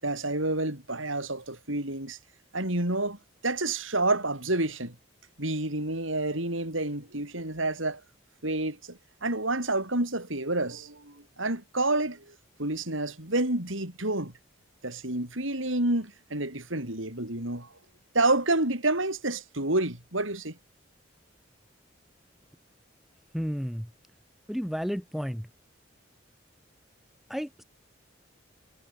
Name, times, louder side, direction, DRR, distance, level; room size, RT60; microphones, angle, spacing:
voice 1, 0.0-2.2 2.5-3.2 3.4-5.0 5.4-8.0 8.4-14.3 14.8-17.7 18.1-20.6, right 2 dB, 75° right, 7.5 m, -29 dB
voice 2, 23.3-23.9 24.5-25.5 27.3-27.6, equal, ahead, 7.7 m, -32 dB
head